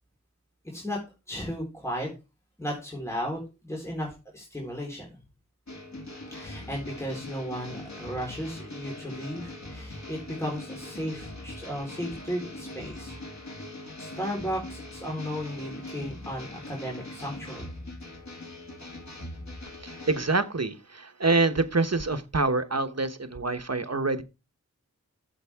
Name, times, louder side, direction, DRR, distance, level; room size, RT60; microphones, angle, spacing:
voice 1, 0.6-1.0 1.3-2.1 2.6-5.1 6.3-13.1 14.0-17.7, equal, 10° left, -2 dB, 4.2 m, -35 dB
sound 1, 5.7-20.3, left 1 dB, 65° left, 2.4 m, -41 dB
voice 2, 19.8-24.2, right 3 dB, 55° right, 8 dB, 1.2 m, -26 dB
13.0 x 8.0 x 3.6 m, 0.29 s
wide cardioid pair, 45°, 30 cm